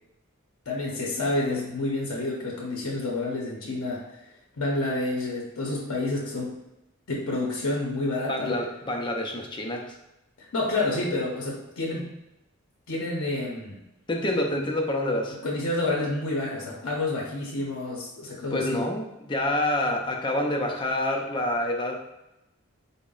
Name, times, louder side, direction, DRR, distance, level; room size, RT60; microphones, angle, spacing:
voice 1, 0.7-6.6 7.1-8.5 10.4-12.1 12.9-13.8 15.4-18.8, left 2 dB, 70° left, -2 dB, 0.6 m, -29 dB
voice 2, 8.3-10.0 14.1-15.4 18.5-22.0, left 1 dB, 20° left, 2 dB, 0.4 m, -27 dB
3.9 x 2.0 x 3.7 m, 0.89 s
head